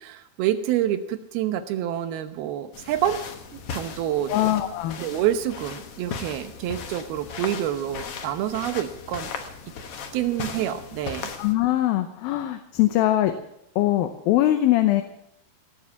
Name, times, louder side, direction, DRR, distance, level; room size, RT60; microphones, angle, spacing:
voice 1, 0.0-3.2 3.5-4.4 5.0-9.3 10.1-11.3, right 11 dB, 85° right, 9 dB, 3.0 m, -27 dB
sound 1, 2.7-11.5, left 6 dB, 60° left, 1.5 m, -37 dB
voice 2, 4.3-5.0 11.4-13.3 13.8-15.0, left 14 dB, 80° left, 7 dB, 2.6 m, -22 dB
18.0 x 7.5 x 8.2 m, 0.78 s
omnidirectional pair, 4.3 m